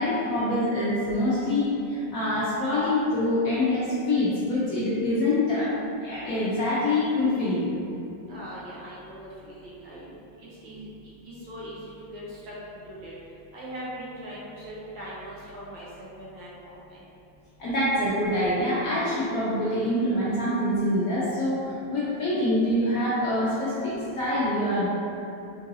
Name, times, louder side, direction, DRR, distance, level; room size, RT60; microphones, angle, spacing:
voice 1, 0.0-5.7 6.0-7.7 17.6-24.9, left 1 dB, 70° left, -8 dB, 0.8 m, -25 dB
voice 2, 8.3-9.2 9.4-10.1 10.4-10.9 11.2-11.8 12.1-13.1 13.5-17.0, equal, 80° right, -8 dB, 1.7 m, -40 dB
4.5 x 2.6 x 2.6 m, 2.7 s
omnidirectional pair, 2.1 m